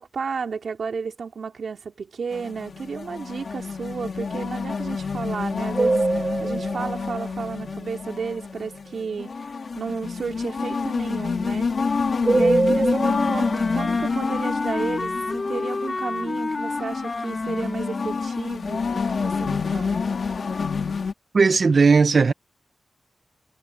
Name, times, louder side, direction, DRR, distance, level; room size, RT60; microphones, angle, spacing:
voice 1, 0.0-9.5 9.8-11.7 12.3-20.0, right 5 dB, 75° right, 3.3 m, -33 dB
sound 1, 2.3-21.1, left 5 dB, 65° left, 1.8 m, -28 dB
sound 2, 5.7-8.2 12.2-13.9, right 3 dB, 40° right, 2.1 m, -24 dB
Wind instrument woodwind instrument, 13.0-18.2, left 3 dB, 40° left, 0.9 m, -29 dB
voice 2, 21.3-22.3, right 4 dB, 55° right, 0.6 m, -16 dB
wide cardioid pair, 85°, 0 cm